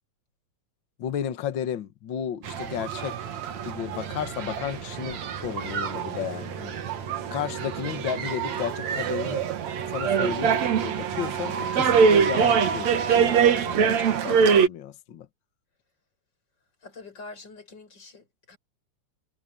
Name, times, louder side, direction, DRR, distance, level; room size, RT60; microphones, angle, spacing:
voice 1, 1.0-3.2 3.6-6.7 7.3-9.4 9.9-15.3, left 9 dB, 50° left, 1.6 m, -33 dB
sound 1, 2.4-14.7, right 6 dB, 65° right, 2.8 m, -24 dB
voice 2, 16.8-18.6, left 3 dB, 30° left, 6.7 m, -45 dB
omnidirectional pair, 3.6 m